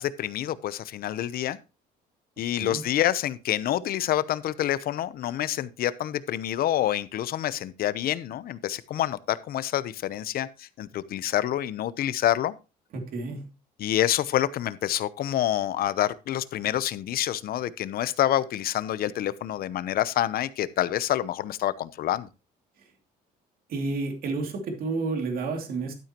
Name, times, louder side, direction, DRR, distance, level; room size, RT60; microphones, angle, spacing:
voice 1, 0.0-1.6 2.4-12.5 13.8-22.3, left 12 dB, 65° left, 0.8 m, -27 dB
voice 2, 12.9-13.5 23.7-25.9, right 3 dB, 60° right, 2.7 m, -30 dB
12.0 x 8.9 x 3.0 m
cardioid pair, 110°, 17 cm